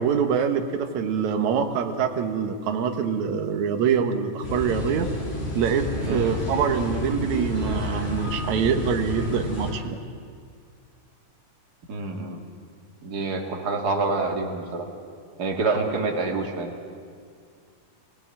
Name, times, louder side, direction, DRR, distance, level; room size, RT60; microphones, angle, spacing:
voice 1, 0.0-5.1 5.6-10.0, right 7 dB, 70° right, 6 dB, 2.5 m, -25 dB
sound 1, 4.4-9.7, left 1 dB, 20° left, 4.9 m, -30 dB
voice 2, 11.9-12.4 13.0-14.8 15.4-16.7, right 3 dB, 35° right, 2 dB, 2.4 m, -27 dB
23.5 x 17.0 x 9.1 m, 2.2 s
omnidirectional pair, 3.7 m